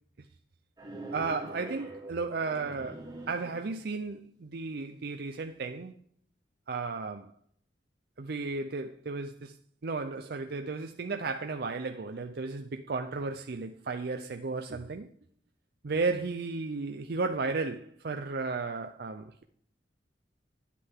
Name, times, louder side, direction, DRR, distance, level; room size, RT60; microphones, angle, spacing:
sound 1, 0.8-4.1, right 2 dB, 25° right, 1.7 m, -44 dB
voice 1, 1.1-5.9 6.7-7.3 8.2-9.5 9.8-15.1 15.8-19.4, right 4 dB, 65° right, 0.5 m, -34 dB
9.9 x 8.4 x 3.6 m
head